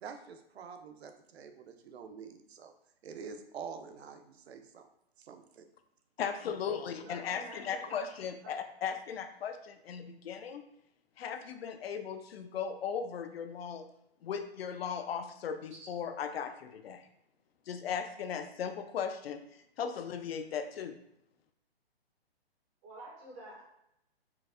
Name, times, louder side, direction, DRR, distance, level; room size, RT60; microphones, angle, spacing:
voice 1, 0.0-2.7 3.0-4.9 5.2-5.7, right 6 dB, 75° right, 7 dB, 0.6 m, -47 dB
voice 2, 6.2-10.6 11.2-13.9 14.2-17.0 17.7-19.4 19.8-21.0, left 7 dB, 70° left, 8 dB, 0.5 m, -37 dB
voice 3, 7.0-8.1 8.4-8.5 15.7-15.9 22.8-23.6, right 2 dB, 15° right, -3 dB, 0.5 m, -48 dB
4.5 x 2.1 x 2.4 m, 0.79 s
hypercardioid pair, 160°, 31 cm